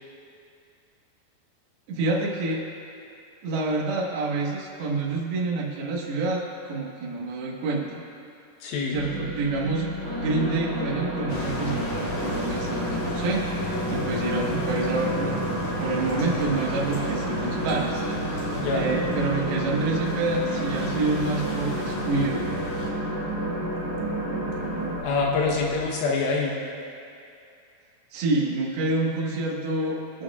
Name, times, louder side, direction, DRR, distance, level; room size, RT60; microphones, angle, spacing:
voice 1, 1.9-2.6 3.4-8.0 8.9-9.9 10.2-13.5 13.9-15.4 15.8-18.0 18.7-22.5 28.1-30.2, right 3 dB, 75° right, -2 dB, 3.4 m, -27 dB
voice 2, 8.6-9.0 18.6-18.9 25.0-26.6, left 4 dB, 75° left, -1 dB, 2.8 m, -25 dB
sound 1, 8.9-25.8, equal, 35° right, 2.7 m, -36 dB
sound 2, 10.0-25.0, right 1 dB, 10° left, 1.4 m, -31 dB
sound 3, 11.3-22.9, left 2 dB, 60° left, 3.0 m, -36 dB
23.5 x 9.6 x 2.4 m, 2.5 s
omnidirectional pair, 4.5 m